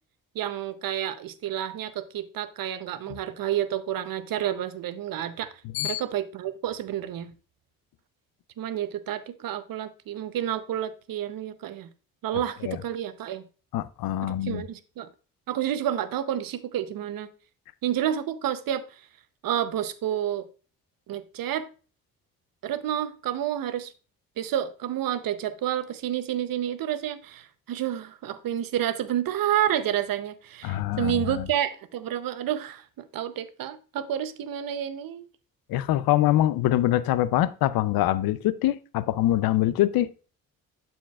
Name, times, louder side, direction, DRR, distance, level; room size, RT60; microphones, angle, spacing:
voice 1, 0.3-5.5 5.8-7.3 8.6-11.9 12.2-13.4 14.2-15.1 15.5-17.3 17.8-18.8 19.4-20.5 21.1-21.7 22.6-23.9 24.4-35.3, right 11 dB, 70° right, 0.7 m, -29 dB
voice 2, 13.7-14.6 30.6-31.4 35.7-40.1, left 14 dB, 80° left, 0.5 m, -24 dB
12.0 x 4.5 x 2.3 m
cardioid pair, 70°, 35 cm